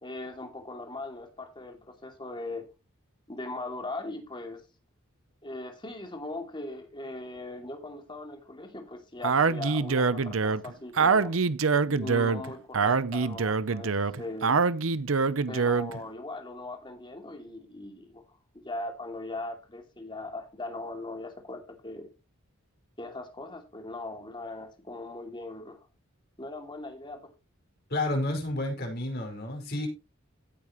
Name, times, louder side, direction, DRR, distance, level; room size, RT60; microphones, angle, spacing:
voice 1, 0.0-2.6 3.3-4.6 5.4-11.4 11.9-14.6 15.5-18.2 18.6-22.1 23.0-25.9 26.4-27.3, left 2 dB, 25° left, 2.7 m, -39 dB
Speech, 9.2-16.0, right 4 dB, 75° right, 0.7 m, -25 dB
voice 2, 27.9-29.9, left 1 dB, 50° left, 5.4 m, -30 dB
15.5 x 8.6 x 3.1 m
head